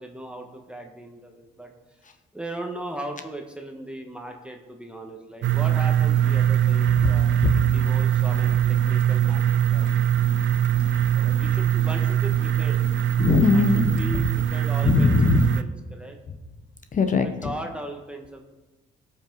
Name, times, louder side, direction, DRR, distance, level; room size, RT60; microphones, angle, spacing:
voice 1, 0.0-1.7 2.0-2.1 2.3-7.3 7.7-9.4 9.7-9.9 11.1-12.9 13.5-16.2 17.2-18.4, right 1 dB, 5° right, 2 dB, 1.3 m, -38 dB
sound 1, 5.4-15.6, right 10 dB, 70° right, 0.5 m, -22 dB
voice 2, 7.0-7.7 13.2-14.2 14.8-15.5 16.9-17.5, left 4 dB, 40° left, 8 dB, 0.9 m, -21 dB
16.5 x 5.6 x 4.0 m, 1.1 s
cardioid pair, 90°, 20 cm